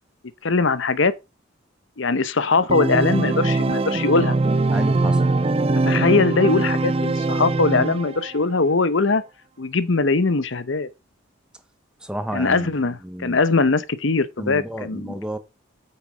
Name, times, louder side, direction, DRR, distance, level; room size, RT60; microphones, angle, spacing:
voice 1, 0.4-1.1 2.0-4.4 5.8-9.2 9.6-10.9 12.3-15.2, left 3 dB, 65° left, 0.8 m, -21 dB
Organ, 2.7-8.4, right 3 dB, 30° right, 0.5 m, -22 dB
voice 2, 4.7-5.2 12.0-12.7 13.0-13.4 14.4-15.4, right 1 dB, 5° right, 0.9 m, -31 dB
8.8 x 6.3 x 5.0 m
head